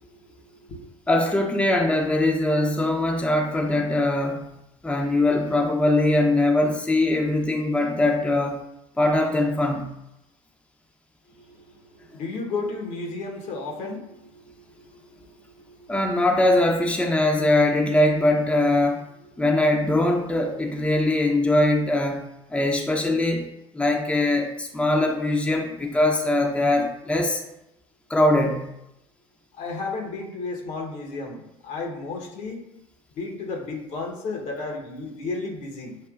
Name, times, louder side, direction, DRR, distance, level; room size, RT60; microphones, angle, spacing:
voice 1, 0.0-0.9 11.3-16.0 29.5-32.6 33.1-36.0, left 3 dB, 65° left, 1 dB, 1.0 m, -34 dB
voice 2, 1.1-4.4 4.8-8.6 9.0-9.9 15.9-19.0 19.4-22.2 22.5-23.5 23.7-27.4 28.1-28.7, left 1 dB, 10° left, 1 dB, 0.6 m, -21 dB
6.7 x 2.7 x 2.4 m, 0.86 s
supercardioid pair, 75°, 13 cm